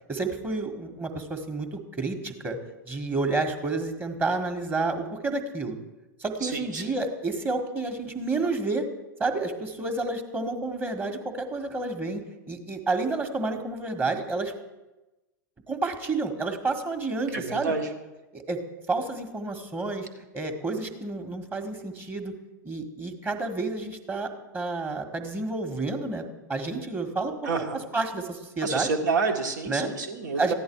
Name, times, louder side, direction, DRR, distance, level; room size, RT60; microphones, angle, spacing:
voice 1, 0.1-2.6 2.9-5.8 6.2-8.9 9.2-12.2 12.5-14.5 15.7-17.7 18.3-18.6 18.9-20.1 20.3-22.3 22.6-27.6 27.9-28.9 29.7-29.9 30.4-30.5, right 3 dB, 20° right, 5 dB, 1.7 m, -30 dB
voice 2, 6.4-6.8 17.3-17.9 27.4-27.8 28.6-30.5, right 4 dB, 70° right, 4 dB, 1.9 m, -28 dB
15.0 x 10.5 x 4.7 m, 1.1 s
figure-of-eight pair, 95°, 10 cm